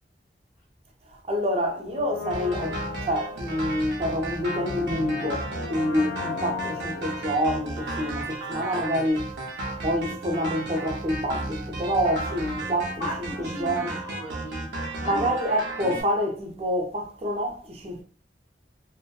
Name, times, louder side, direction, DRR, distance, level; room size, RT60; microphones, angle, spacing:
voice 1, 1.1-9.3 9.8-13.9 15.0-18.0, equal, 35° right, 0.4 m, -27 dB
Brass instrument, 1.9-8.7 9.0-9.1, left 5 dB, 70° left, 0.3 m, -37 dB
sound 1, 2.3-16.0, right 2 dB, 85° right, 0.6 m, -34 dB
voice 2, 13.0-15.6, left 1 dB, 40° left, 0.7 m, -37 dB
2.6 x 2.1 x 2.2 m
head